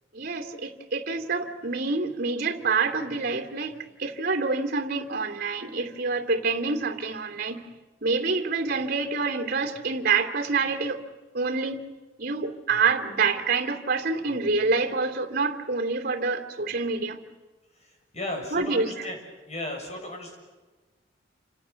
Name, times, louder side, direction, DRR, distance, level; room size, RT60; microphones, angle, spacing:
voice 1, 0.1-7.6 8.0-11.0 11.3-11.8 12.2-17.2 18.5-18.9, right 4 dB, 50° right, 2.8 m, -27 dB
voice 2, 17.7-19.2 19.5-20.4, left 1 dB, 35° left, 7.3 m, -35 dB
29.0 x 26.0 x 7.1 m
head